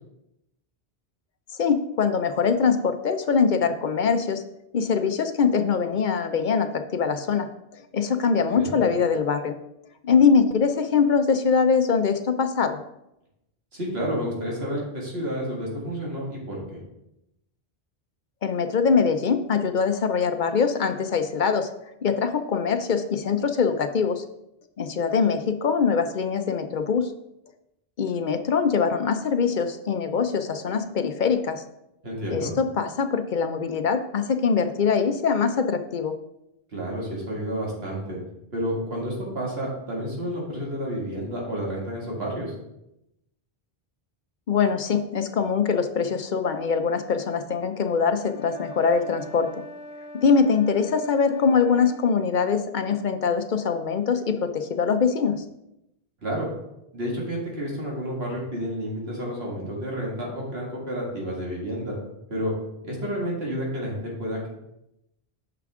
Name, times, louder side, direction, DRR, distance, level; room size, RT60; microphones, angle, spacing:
voice 1, 1.6-4.4 4.7-7.5 7.9-9.6 10.0-12.8 18.4-21.7 22.0-24.2 24.8-27.1 28.0-31.6 32.3-36.2 44.5-49.6 50.1-55.4, left 5 dB, 55° left, 8 dB, 0.7 m, -23 dB
voice 2, 13.7-16.8 32.0-32.5 36.7-38.2 38.5-42.5 56.2-56.5 56.9-61.9 62.3-62.5 62.8-64.5, equal, 70° right, -3 dB, 2.3 m, -30 dB
sound 1, 48.2-52.2, left 1 dB, 90° left, 1.1 m, -42 dB
9.3 x 5.9 x 3.6 m, 0.85 s
omnidirectional pair, 1.1 m